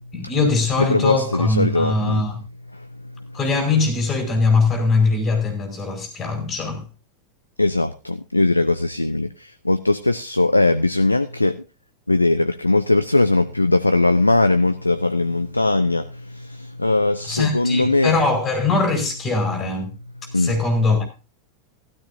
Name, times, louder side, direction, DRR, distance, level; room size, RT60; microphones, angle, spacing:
voice 1, 0.1-2.4 3.3-6.8 17.3-19.9 20.3-21.0, left 3 dB, 25° left, 4.9 m, -21 dB
voice 2, 0.8-2.2 2.7-2.9 3.2-3.3 7.6-11.6 12.1-18.1 20.3-20.6, left 2 dB, 85° left, 0.5 m, -20 dB
16.0 x 12.5 x 2.7 m
figure-of-eight pair, 90°, 0 cm